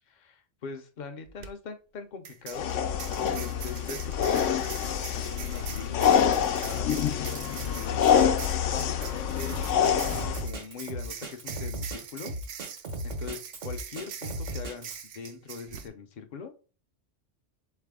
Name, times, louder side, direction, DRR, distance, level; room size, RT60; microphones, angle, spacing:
voice 1, 0.1-2.7 3.3-6.9 7.5-8.2 8.7-12.3 13.0-16.5, left 5 dB, 45° left, 7 dB, 0.6 m, -41 dB
sound 1, 1.3-1.5 2.2-15.9, right 8 dB, 65° right, 0.8 m, -43 dB
sound 2, 2.5-10.5, left 8 dB, 85° left, 0.9 m, -26 dB
Drum kit, 9.5-15.1, right 1 dB, 90° right, 1.6 m, -36 dB
4.0 x 3.3 x 3.6 m, 0.35 s
omnidirectional pair, 1.3 m